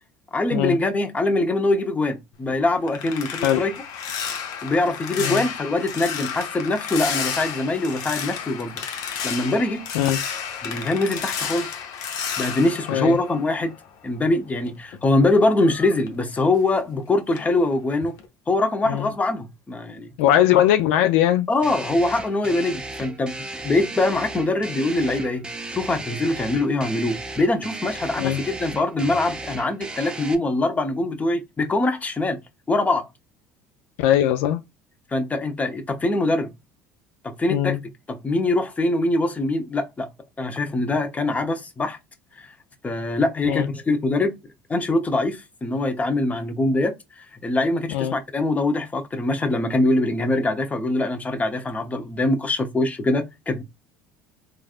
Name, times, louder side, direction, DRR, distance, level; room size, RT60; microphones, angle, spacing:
voice 1, 0.3-3.7 4.6-8.9 9.2-9.9 10.6-11.7 12.4-13.7 14.0-18.1 18.5-20.1 21.5-23.3 23.6-25.5 25.7-32.4 32.7-33.1 35.1-36.5 37.2-37.8 38.1-40.1 40.4-42.0 42.4-42.5 42.8-44.3 44.7-53.6, left 2 dB, 20° left, 0.8 m, -23 dB
sound 1, 2.3-14.0 14.3-17.0 17.3-17.6 18.0-18.3, left 7 dB, 65° left, 0.7 m, -32 dB
voice 2, 20.2-21.5 28.2-28.4 34.0-34.6 37.5-37.8 43.5-43.7 47.9-48.1, left 12 dB, 80° left, 0.3 m, -20 dB
sound 2, 21.6-30.3, right 2 dB, 15° right, 0.5 m, -35 dB
3.3 x 2.4 x 2.3 m
supercardioid pair, 85°, 7 cm